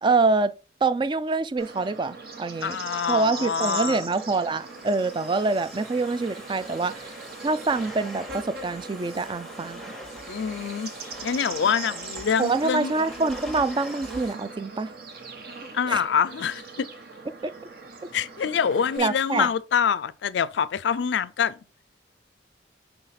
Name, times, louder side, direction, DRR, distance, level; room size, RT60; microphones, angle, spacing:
voice 1, 0.0-0.5 0.8-2.8 3.1-7.1 7.4-9.8 12.4-14.9 15.9-16.0 17.4-17.5 19.0-19.5, right 3 dB, 25° right, 0.3 m, -25 dB
Bird / Insect, 1.6-19.0, right 4 dB, 55° right, 1.2 m, -40 dB
voice 2, 2.6-4.0 10.3-10.9 11.2-12.9 15.7-16.9 18.1-21.6, left 7 dB, 70° left, 0.4 m, -25 dB
Domestic sounds home sounds, 3.7-14.3, left 1 dB, ahead, 1.0 m, -44 dB
5.6 x 3.3 x 5.7 m
head